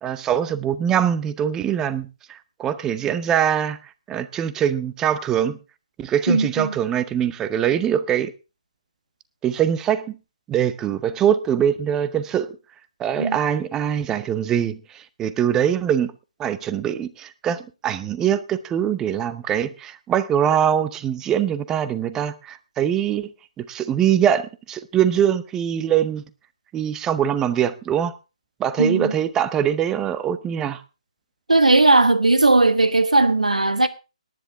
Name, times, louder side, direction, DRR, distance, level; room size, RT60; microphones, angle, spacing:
voice 1, 0.0-3.8 4.1-5.6 6.0-8.3 9.4-10.2 10.5-12.5 13.0-16.1 16.4-23.3 23.6-26.2 26.7-28.1 28.6-30.8, right 9 dB, 15° right, 0.8 m, -23 dB
voice 2, 6.3-6.8 13.2-13.4 28.8-29.1 31.5-33.9, right 2 dB, 80° right, 1.4 m, -17 dB
19.0 x 10.5 x 3.6 m
figure-of-eight pair, 140°, 4 cm